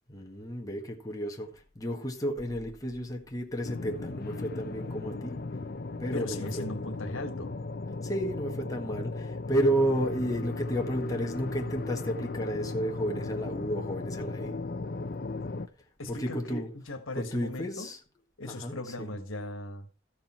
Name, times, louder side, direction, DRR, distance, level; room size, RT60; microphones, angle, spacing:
voice 1, 0.1-5.4 6.0-6.6 8.0-14.6 16.1-16.7 17.2-18.0 18.4-19.1, equal, 20° left, 1.7 m, -32 dB
sound 1, 3.6-15.7, left 3 dB, 50° left, 0.6 m, -36 dB
voice 2, 5.9-7.6 16.0-17.9 18.4-19.9, left 1 dB, 90° left, 1.6 m, -38 dB
14.0 x 6.7 x 4.4 m
head